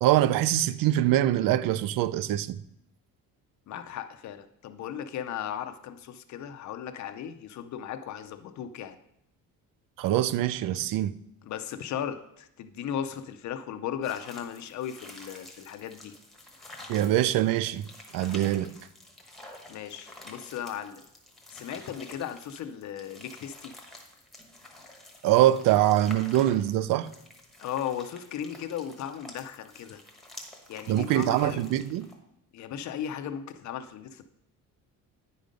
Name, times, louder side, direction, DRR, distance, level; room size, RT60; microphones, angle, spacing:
voice 1, 0.0-2.6 10.0-11.1 16.9-17.8 18.1-18.7 25.2-27.1 30.9-32.1, right 13 dB, 65° right, 0.5 m, -24 dB
voice 2, 3.7-9.0 11.4-16.1 19.7-21.0 21.5-23.7 27.6-30.0 30.7-31.7 32.5-34.2, left 9 dB, 55° left, 0.6 m, -36 dB
sound 1, 14.0-32.1, left 1 dB, ahead, 1.0 m, -49 dB
9.3 x 5.2 x 5.2 m
cardioid pair, 170°, 35 cm